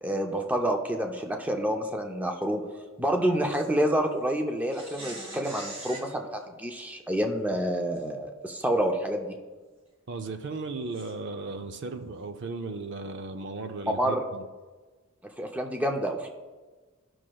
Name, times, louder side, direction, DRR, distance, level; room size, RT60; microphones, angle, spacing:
voice 1, 0.0-2.6 3.0-9.3 14.0-14.2 15.4-16.3, right 1 dB, 10° right, 3 dB, 0.5 m, -28 dB
sound 1, 3.5-3.7 4.7-6.1 7.9-8.0 8.6-8.7 10.9-11.1, right 1 dB, 30° right, 1.5 m, -42 dB
voice 2, 10.1-14.4, right 3 dB, 60° right, 7 dB, 0.5 m, -36 dB
15.0 x 6.2 x 2.3 m, 1.3 s
head